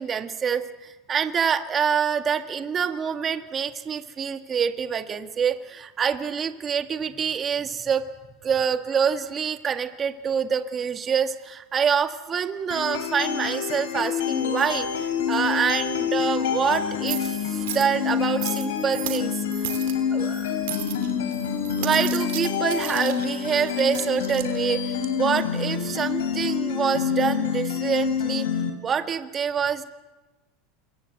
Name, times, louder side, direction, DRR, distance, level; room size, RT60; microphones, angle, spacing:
voice 1, 0.0-8.0 8.4-19.3 20.1-20.5 21.8-28.5 28.8-29.8, right 7 dB, 30° right, 7 dB, 2.0 m, -26 dB
sound 1, 12.7-28.7, left 7 dB, 80° left, 4.0 m, -27 dB
sound 2, 14.4-26.4, right 15 dB, 70° right, 2.5 m, -38 dB
28.0 x 24.0 x 8.0 m, 1.2 s
hypercardioid pair, 90°, 0 cm